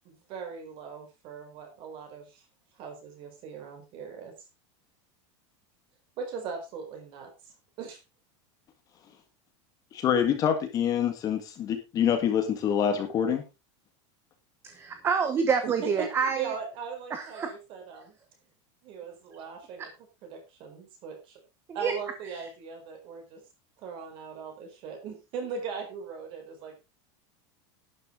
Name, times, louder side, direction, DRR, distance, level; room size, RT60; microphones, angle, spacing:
voice 1, 0.0-2.4 2.8-4.3 6.2-8.0 15.6-18.2 18.8-19.9 20.2-21.4 21.7-23.4 23.8-26.8, right 6 dB, 35° right, 5 dB, 4.4 m, -39 dB
voice 2, 9.9-13.4, left 8 dB, 25° left, 6 dB, 1.8 m, -26 dB
voice 3, 14.6-16.5 17.1-17.5 19.8-19.9 21.7-21.9 22.3-22.5, right 6 dB, 15° right, 8 dB, 1.0 m, -28 dB
12.0 x 10.5 x 3.7 m, 0.27 s
supercardioid pair, 180°, 15 cm